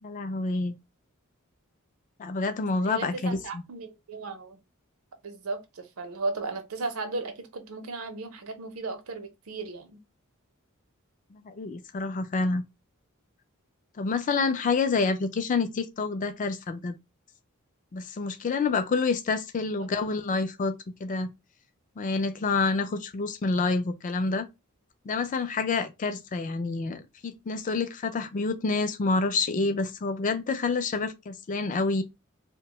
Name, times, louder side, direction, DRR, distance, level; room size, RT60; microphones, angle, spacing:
voice 1, 0.0-0.7 2.2-3.6 11.3-12.6 14.0-17.0 17.9-20.7 21.0-21.3 22.0-24.5 25.1-32.0, left 4 dB, 35° left, 0.4 m, -28 dB
voice 2, 2.8-4.6 5.2-10.0 19.8-19.9, right 3 dB, 80° right, 0.6 m, -35 dB
2.7 x 2.1 x 2.9 m
head